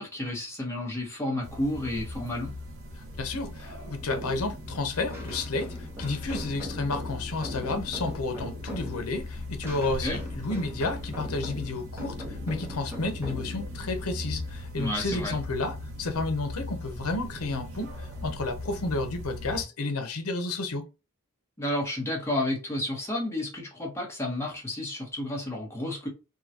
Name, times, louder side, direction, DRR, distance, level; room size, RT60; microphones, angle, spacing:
voice 1, 0.0-2.5 10.0-10.2 14.8-15.3 21.6-26.1, left 1 dB, 10° left, 1.1 m, -31 dB
sound 1, 1.4-19.6, left 2 dB, 60° right, 0.8 m, -39 dB
voice 2, 3.2-20.9, left 3 dB, 75° left, 0.8 m, -31 dB
sound 2, 4.0-15.4, equal, 10° right, 0.9 m, -41 dB
3.8 x 2.3 x 2.8 m
head